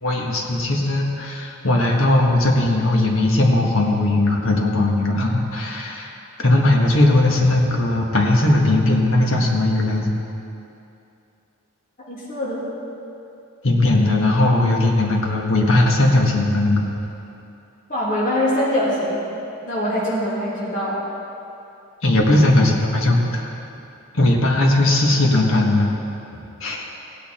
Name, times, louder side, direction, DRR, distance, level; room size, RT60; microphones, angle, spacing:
voice 1, 0.0-6.1 6.4-10.2 13.6-16.9 22.0-23.5 24.1-25.9 26.6-26.9, left 2 dB, 70° left, -1 dB, 1.6 m, -18 dB
voice 2, 12.1-12.7 17.9-19.2 19.7-21.0, left 1 dB, 35° left, -8 dB, 2.6 m, -23 dB
16.5 x 8.8 x 4.4 m, 2.7 s
head